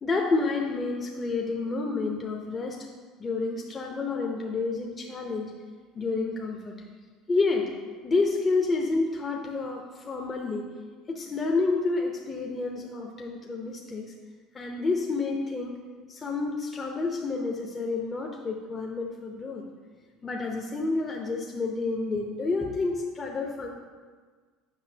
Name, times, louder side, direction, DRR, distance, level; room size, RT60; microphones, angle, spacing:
voice 1, 0.0-2.8 3.2-5.5 5.9-6.8 7.3-7.7 8.0-10.6 11.1-14.0 14.5-15.8 16.1-19.6 20.2-23.7, left 3 dB, 30° left, 0 dB, 0.8 m, -29 dB
8.1 x 5.7 x 2.8 m, 1.5 s
hypercardioid pair, 80°, 0 cm